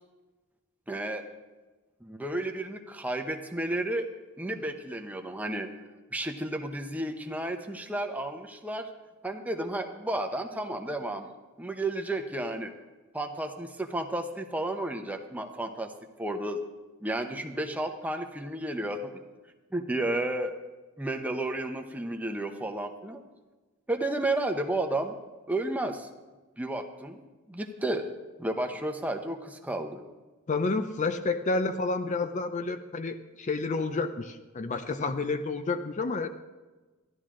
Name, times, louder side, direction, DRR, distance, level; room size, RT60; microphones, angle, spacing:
voice 1, 0.9-1.2 2.0-4.1 4.4-5.7 6.1-8.9 9.2-11.3 11.6-12.7 13.1-15.9 16.2-16.6 17.0-19.2 19.7-20.5 21.0-23.2 23.9-25.2 25.5-26.1 26.6-28.1 28.4-30.0, right 1 dB, 5° right, 4 dB, 0.8 m, -32 dB
voice 2, 30.5-36.3, left 3 dB, 35° left, 9 dB, 0.5 m, -30 dB
13.0 x 11.5 x 3.7 m, 1.2 s
head